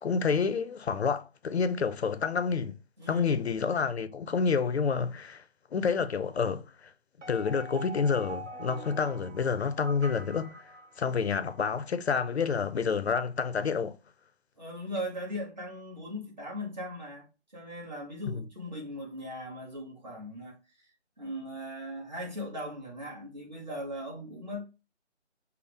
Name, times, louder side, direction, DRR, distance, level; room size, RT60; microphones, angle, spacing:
voice 1, 0.0-2.8 3.1-5.4 5.7-6.9 7.3-10.6 11.0-14.0 18.3-18.4, left 5 dB, 65° left, 0.5 m, -29 dB
voice 2, 3.0-3.5 14.6-20.9 21.2-24.7, equal, 40° right, 1.2 m, -39 dB
sound 1, 7.2-11.5, right 2 dB, 85° right, 1.0 m, -44 dB
5.6 x 2.0 x 3.3 m
figure-of-eight pair, 175°, 35 cm